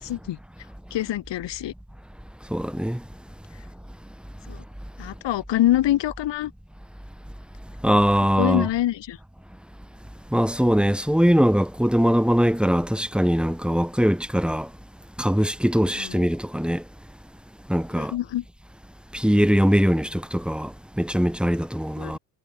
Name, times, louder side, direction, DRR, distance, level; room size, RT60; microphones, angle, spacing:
voice 1, 0.0-0.4 0.9-1.7 4.5-4.6 5.0-6.5 8.4-9.2 16.0-16.3 18.0-18.4 22.0-22.1, left 13 dB, 60° left, 2.2 m, -25 dB
voice 2, 2.5-3.0 7.8-8.7 10.3-14.7 15.2-16.8 17.7-18.1 19.1-22.2, equal, ahead, 2.5 m, -21 dB
supercardioid pair, 80°, 49 cm